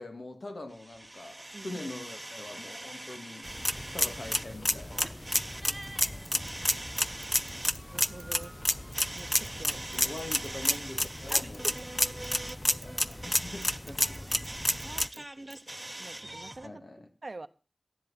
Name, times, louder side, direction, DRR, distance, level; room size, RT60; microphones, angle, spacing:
voice 1, 0.0-3.5 3.9-5.1 7.3-7.6 9.7-11.6 12.8-14.4 15.1-15.2 16.6-17.1, left 2 dB, 60° left, 2.1 m, -43 dB
sound 1, 0.7-16.7, right 1 dB, 20° right, 1.0 m, -43 dB
sound 2, 3.4-15.1, left 1 dB, 20° left, 0.6 m, -31 dB
Bicycle / Mechanisms, 5.8-12.6 12.8-14.5 14.8-15.2 15.5-15.6, right 3 dB, 70° right, 0.9 m, -52 dB
voice 2, 7.9-8.5 9.1-9.8 11.3-11.8 15.1-15.5 15.8-16.8 17.2-17.5, right 2 dB, 50° right, 0.7 m, -45 dB
13.5 x 10.5 x 4.1 m
wide cardioid pair, 65°, 0 cm